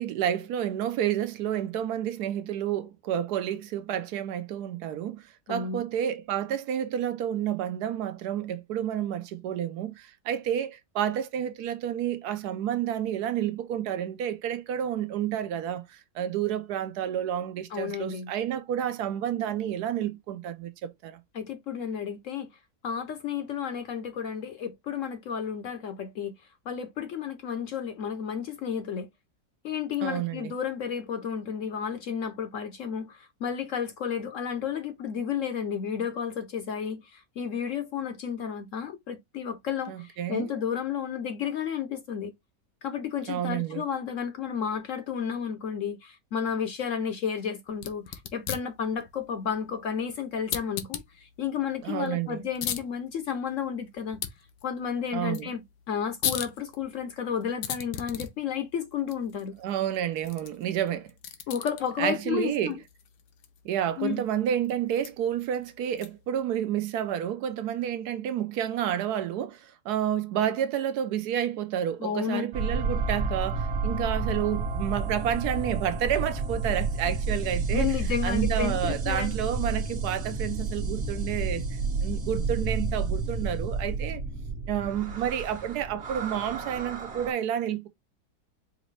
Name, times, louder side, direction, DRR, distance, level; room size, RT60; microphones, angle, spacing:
voice 1, 0.0-21.2 30.0-30.5 39.9-40.5 43.3-43.8 51.8-52.4 55.1-55.5 59.6-61.1 62.0-62.7 63.6-78.0 78.2-81.6 82.0-84.2 84.7-87.9, right 10 dB, 75° right, 1.1 m, -30 dB
voice 2, 5.5-5.8 17.7-18.3 21.3-22.5 22.8-26.3 26.7-29.1 29.6-42.3 42.8-54.2 54.6-59.5 61.5-62.8 64.0-64.2 72.0-72.5 77.7-79.4, left 7 dB, 65° left, 0.8 m, -32 dB
sound 1, 47.7-66.4, left 9 dB, 85° left, 1.3 m, -40 dB
sound 2, 72.5-87.3, right 3 dB, 45° right, 1.2 m, -30 dB
4.9 x 2.6 x 3.1 m
omnidirectional pair, 1.8 m